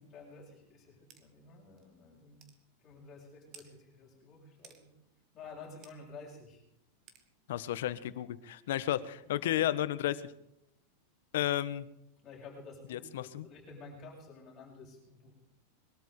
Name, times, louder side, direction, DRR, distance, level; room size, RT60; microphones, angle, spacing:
voice 1, 0.0-2.4 2.8-4.9 5.3-6.6 9.2-9.6 12.2-15.3, left 3 dB, 20° left, -2 dB, 7.2 m, -51 dB
sound 1, 1.1-1.2 1.8-1.9 2.4-2.6 3.5-3.7 4.6-4.8 5.8-6.0 7.1-7.2, right 7 dB, 30° right, 2.1 m, -54 dB
voice 2, 7.5-10.3 11.3-11.9 12.9-13.5, left 12 dB, 70° left, 14 dB, 1.3 m, -32 dB
22.0 x 13.0 x 4.9 m, 0.79 s
supercardioid pair, 165°, 0 cm